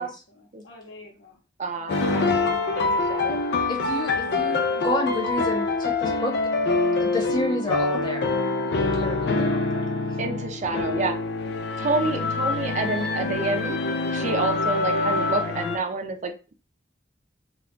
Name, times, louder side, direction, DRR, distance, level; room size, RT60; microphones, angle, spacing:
voice 1, 0.0-1.4 1.8-3.3 3.5-3.7 4.1-4.3 4.7-5.4, equal, 85° left, 1 dB, 0.9 m, -45 dB
voice 2, 1.6-2.4 2.8-3.4 4.2-4.6 8.7-9.1 10.2-11.1 11.8-13.8 14.1-16.3, right 3 dB, 40° right, 5 dB, 0.5 m, -29 dB
sound 1, 1.9-15.8, left 3 dB, 60° left, 0.4 m, -25 dB
voice 3, 3.7-6.3 7.0-8.3 8.8-9.8, left 2 dB, 25° left, -1 dB, 0.9 m, -30 dB
2.3 x 2.3 x 3.7 m, 0.32 s
head